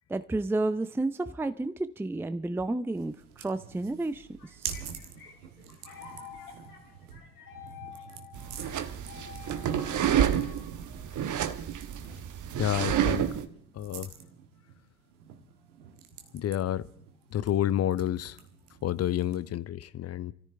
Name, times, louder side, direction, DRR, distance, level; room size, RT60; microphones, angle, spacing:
voice 1, 0.1-4.3 4.6-4.7, right 2 dB, 5° right, 0.6 m, -31 dB
sound 1, 2.9-19.6, right 7 dB, 75° right, 1.5 m, -47 dB
sound 2, 4.1-11.7, left 7 dB, 80° left, 2.8 m, -49 dB
sound 3, 8.4-13.4, right 9 dB, 40° right, 1.2 m, -29 dB
voice 2, 12.6-13.2 13.7-14.1 16.3-16.9 17.3-18.4 18.8-20.3, left 11 dB, 35° left, 0.7 m, -29 dB
29.5 x 13.5 x 3.4 m
figure-of-eight pair, 50°, 45 cm